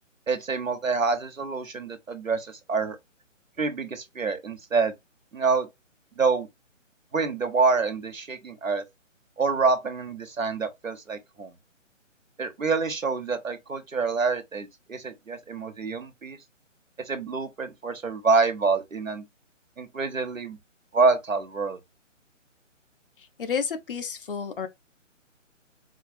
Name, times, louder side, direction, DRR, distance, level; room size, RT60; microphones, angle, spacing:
voice 1, 0.3-3.0 3.6-4.9 5.3-5.7 6.2-6.5 7.1-8.8 9.4-11.5 12.4-16.4 17.1-19.2 19.8-20.6 20.9-21.8, right 4 dB, 90° right, 1.1 m, -26 dB
voice 2, 23.4-24.7, left 6 dB, 45° left, 0.8 m, -30 dB
4.4 x 2.4 x 2.6 m
figure-of-eight pair, 140°, 38 cm